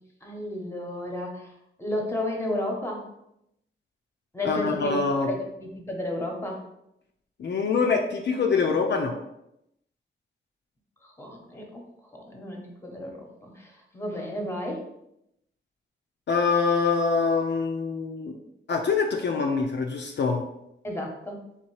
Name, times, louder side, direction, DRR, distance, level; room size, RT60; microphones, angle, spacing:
voice 1, 0.2-1.5 1.8-3.0 4.3-6.6 11.0-11.8 12.1-14.9 20.8-21.4, left 1 dB, 15° left, 1 dB, 1.0 m, -32 dB
voice 2, 4.4-5.3 7.4-9.2 16.3-18.3 18.7-20.4, left 5 dB, 60° left, 2 dB, 0.5 m, -24 dB
3.6 x 2.9 x 4.7 m, 0.81 s
wide cardioid pair, 95°, 20 cm